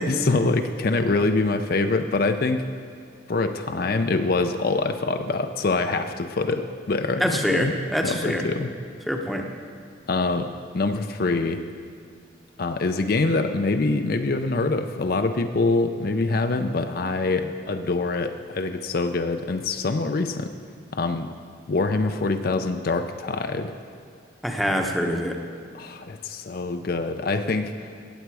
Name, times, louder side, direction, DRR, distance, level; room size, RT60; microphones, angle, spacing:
voice 1, 0.1-2.6 3.3-7.7 8.0-8.7 10.1-11.7 12.6-20.5 20.9-21.3 21.7-23.8 24.6-24.7 25.7-27.9, left 3 dB, 50° left, 7 dB, 0.5 m, -25 dB
voice 2, 7.2-8.5 9.1-9.5 24.4-25.4, equal, ahead, 2 dB, 0.8 m, -25 dB
17.0 x 8.0 x 4.7 m, 2.4 s
head